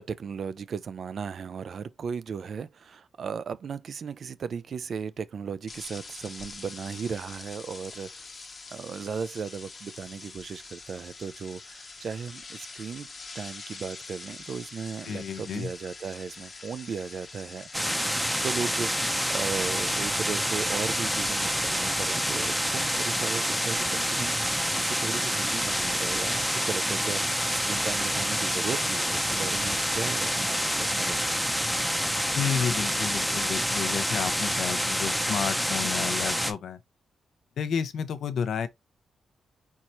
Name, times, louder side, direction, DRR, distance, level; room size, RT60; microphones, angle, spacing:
voice 1, 0.0-8.3 8.7-13.1 13.3-18.0 18.4-31.6, right 6 dB, 55° right, 0.4 m, -36 dB
sound 1, 5.7-23.8, left 4 dB, 35° left, 0.9 m, -45 dB
voice 2, 15.1-15.7 32.4-36.8 37.6-38.7, left 7 dB, 75° left, 0.6 m, -31 dB
sound 2, 17.7-36.5, equal, ahead, 0.7 m, -27 dB
4.5 x 4.3 x 2.6 m
cardioid pair, 125°, 0 cm